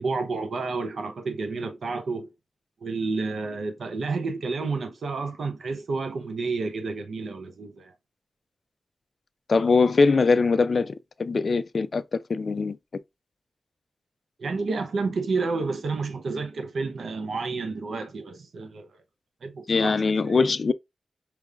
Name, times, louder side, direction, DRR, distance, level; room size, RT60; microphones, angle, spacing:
voice 1, 0.0-2.3 2.8-7.9 14.4-18.9 19.4-20.4, right 4 dB, 85° right, 0.8 m, -30 dB
voice 2, 9.5-12.8 19.7-20.7, left 4 dB, 55° left, 0.3 m, -22 dB
5.1 x 3.1 x 2.4 m
wide cardioid pair, 115°, 0 cm